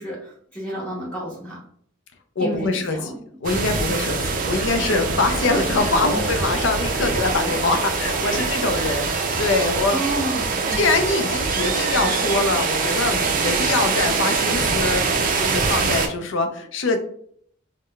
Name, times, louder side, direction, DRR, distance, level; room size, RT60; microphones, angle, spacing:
voice 1, 0.0-1.6 2.4-3.2 6.1-6.3 9.9-10.8, right 1 dB, 5° left, -6 dB, 0.8 m, -30 dB
voice 2, 2.4-3.0 3.4-10.0 10.8-15.0 15.4-17.0, left 3 dB, 65° left, 7 dB, 0.5 m, -23 dB
sound 1, 3.4-16.1, right 4 dB, 40° right, 0.4 m, -23 dB
sound 2, 4.5-8.5, equal, 45° left, 1.1 m, -34 dB
4.6 x 2.1 x 2.3 m, 0.63 s
head